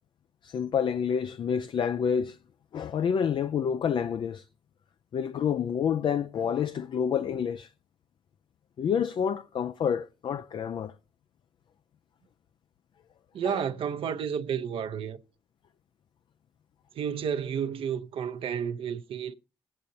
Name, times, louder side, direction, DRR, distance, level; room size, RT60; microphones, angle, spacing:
voice 1, 0.4-2.4 2.7-4.5 5.1-7.7 8.8-10.9 13.4-13.6, left 7 dB, 55° left, 0.4 m, -28 dB
voice 2, 13.3-15.2 17.0-19.3, right 8 dB, 70° right, 0.7 m, -31 dB
20.0 x 8.6 x 2.7 m
cardioid pair, 90°, 9 cm